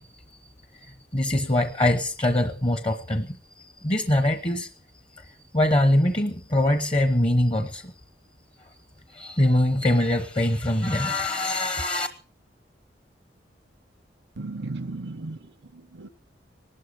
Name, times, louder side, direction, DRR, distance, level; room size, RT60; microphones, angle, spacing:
voice 1, 0.0-4.7 5.1-7.9 8.6-8.7 9.1-12.1, left 1 dB, 30° left, 1.0 m, -24 dB
voice 2, 14.4-16.1, right 2 dB, 80° right, 0.8 m, -36 dB
18.0 x 12.5 x 6.4 m
head